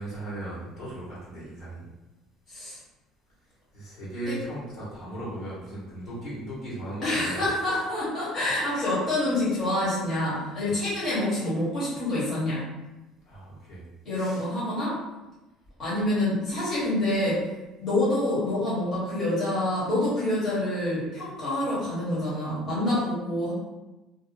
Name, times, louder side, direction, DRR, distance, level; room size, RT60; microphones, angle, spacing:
voice 1, 0.0-1.9 3.7-7.5 10.6-10.8 13.2-13.9 14.1-14.4, right 1 dB, 50° left, -7 dB, 1.2 m, -37 dB
voice 2, 2.5-2.8 4.3-4.4 7.0-12.7 14.0-15.0 15.8-17.4 17.8-23.5, left 1 dB, 30° left, -10 dB, 1.1 m, -27 dB
2.6 x 2.4 x 2.6 m, 1.0 s
cardioid pair, 150°, 0 cm